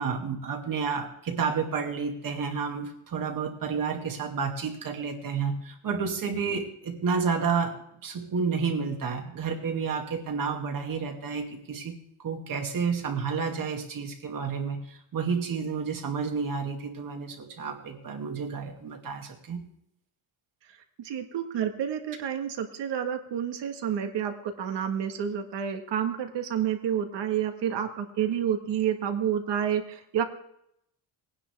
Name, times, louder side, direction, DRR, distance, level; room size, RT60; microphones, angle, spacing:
voice 1, 0.0-11.9 12.2-19.6, right 5 dB, 45° right, 3 dB, 2.0 m, -30 dB
voice 2, 21.0-30.2, right 9 dB, 65° right, 6 dB, 1.7 m, -29 dB
18.5 x 9.9 x 3.5 m, 0.74 s
cardioid pair, 130°, 46 cm